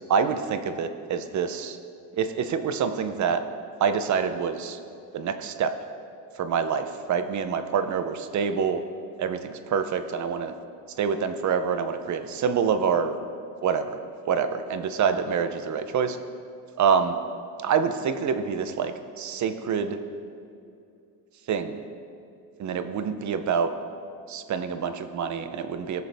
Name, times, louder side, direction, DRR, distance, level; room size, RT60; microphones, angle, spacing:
voice 1, 0.1-1.8 2.2-3.4 3.8-4.8 5.1-5.7 6.4-8.8 9.2-10.5 11.0-13.1 13.6-13.9 14.2-16.2 16.8-17.2 17.6-20.0 21.5-21.8 22.6-23.7 24.3-26.0, right 6 dB, 40° right, 9 dB, 0.7 m, -26 dB
17.5 x 6.8 x 3.5 m, 2.5 s
cardioid pair, 140°, 45 cm